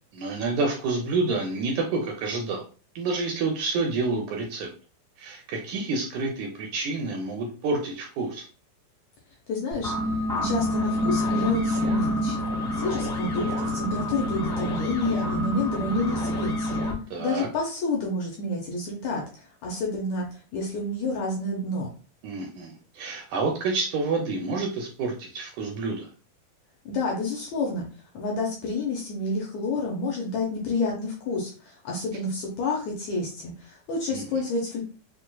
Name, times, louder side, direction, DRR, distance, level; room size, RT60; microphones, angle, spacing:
voice 1, 0.1-2.6 3.0-4.7 5.2-8.5 17.1-17.5 22.2-26.1 34.1-34.4, right 3 dB, 80° right, 1 dB, 1.8 m, -28 dB
voice 2, 9.5-9.9 10.4-12.4 12.7-16.8 17.2-21.9 26.9-27.8 28.1-34.8, left 2 dB, 75° left, -1 dB, 1.7 m, -29 dB
sound 1, 9.7-16.9, left 1 dB, 40° left, 0.8 m, -27 dB
6.0 x 2.4 x 2.2 m, 0.37 s
omnidirectional pair, 3.9 m